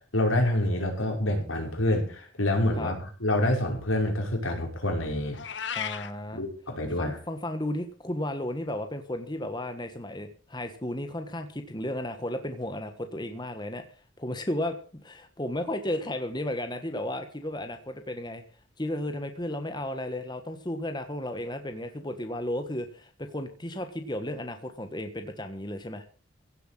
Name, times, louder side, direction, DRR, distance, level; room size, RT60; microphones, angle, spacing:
voice 1, 0.1-5.4 6.3-7.2, left 1 dB, 85° left, 2 dB, 5.4 m, -27 dB
Meow, 5.3-6.1, left 8 dB, 60° left, 1.4 m, -34 dB
voice 2, 5.7-6.4 7.0-13.8 14.2-18.4 18.8-26.0, left 1 dB, 20° left, 7 dB, 1.5 m, -34 dB
16.5 x 8.0 x 7.6 m, 0.41 s
head